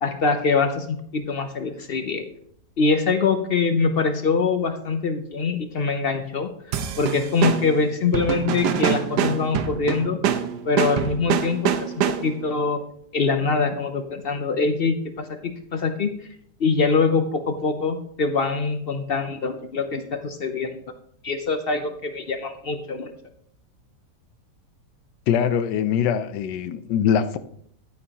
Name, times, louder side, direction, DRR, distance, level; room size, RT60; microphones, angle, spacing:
voice 1, 0.0-2.2 2.8-6.5 7.0-10.2 10.6-12.8 13.1-15.3 15.7-16.3 16.6-20.7 21.2-23.1, left 4 dB, 60° left, 0.6 m, -23 dB
sound 1, 6.7-12.5, right 9 dB, 75° right, 1.3 m, -25 dB
voice 2, 25.3-27.4, left 8 dB, 85° left, 1.3 m, -22 dB
10.5 x 9.4 x 2.9 m
omnidirectional pair, 1.8 m